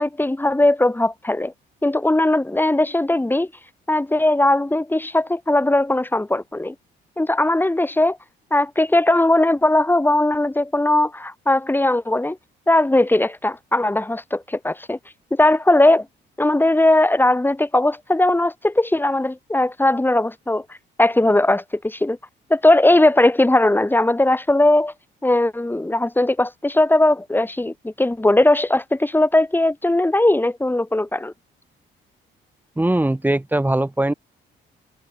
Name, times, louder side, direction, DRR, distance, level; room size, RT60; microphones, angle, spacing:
voice 1, 0.0-1.5 1.8-3.5 3.9-6.7 7.2-8.2 8.5-12.4 12.7-15.0 15.3-16.1 16.4-20.6 21.0-22.2 22.5-24.9 25.2-31.3, left 1 dB, 10° left, 2.4 m, -18 dB
voice 2, 32.8-34.1, right 1 dB, 10° right, 1.6 m, -20 dB
cardioid pair, 90°, 20 cm